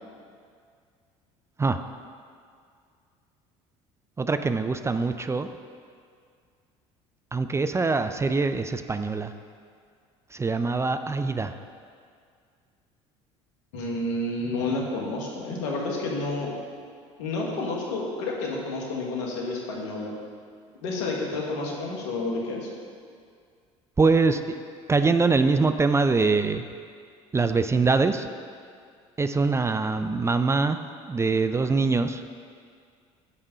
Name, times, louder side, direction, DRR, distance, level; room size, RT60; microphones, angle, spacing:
voice 1, 4.2-5.5 7.3-9.3 10.3-11.5 24.0-24.6 24.9-26.6 27.3-28.3 29.2-30.8 31.0-32.2, right 4 dB, 20° right, 9 dB, 0.4 m, -23 dB
voice 2, 13.7-16.5 17.2-20.1 20.8-22.7, left 2 dB, 80° left, -2 dB, 1.6 m, -30 dB
9.9 x 3.7 x 6.7 m, 2.2 s
hypercardioid pair, 75°, 15 cm